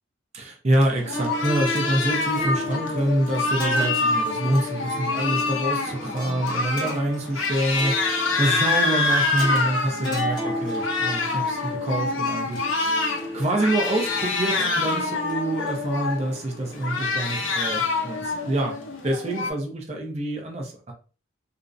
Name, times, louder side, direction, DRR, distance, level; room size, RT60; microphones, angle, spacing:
voice 1, 0.3-12.6 13.3-18.7 19.0-20.9, right 1 dB, 35° right, 1 dB, 0.5 m, -26 dB
sound 1, 0.8-19.5, left 3 dB, 80° left, 0.5 m, -26 dB
sound 2, 1.1-17.6, equal, 20° left, 0.7 m, -36 dB
2.5 x 2.0 x 2.4 m, 0.35 s
head